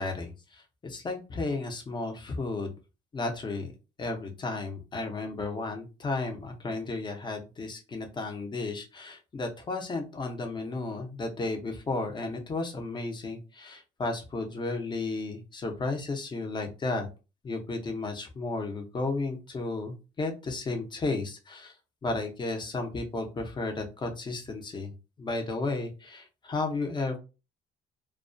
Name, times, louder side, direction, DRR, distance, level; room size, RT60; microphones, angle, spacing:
voice 1, 0.0-2.7 3.1-3.7 4.0-17.1 17.4-21.7 22.0-27.2, left 3 dB, 25° left, 4 dB, 0.6 m, -33 dB
2.2 x 2.2 x 2.5 m, 0.31 s
cardioid pair, 110°, 17 cm